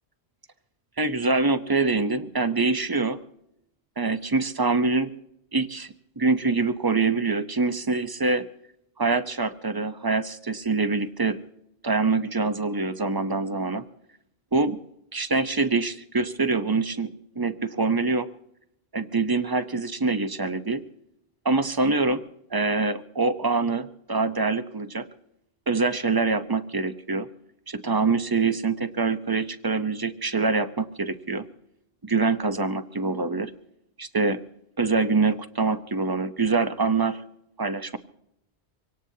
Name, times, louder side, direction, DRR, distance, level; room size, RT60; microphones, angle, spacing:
voice 1, 1.0-3.2 4.0-5.1 5.5-8.4 9.0-11.4 11.8-13.8 14.5-14.8 15.1-17.1 17.4-18.3 18.9-20.8 21.4-22.2 22.5-25.1 25.7-27.3 27.7-31.4 32.0-33.5 34.0-34.4 34.8-37.2 37.6-38.0, right 3 dB, 25° right, 11 dB, 0.7 m, -25 dB
25.0 x 18.0 x 2.8 m, 0.78 s
omnidirectional pair, 1.1 m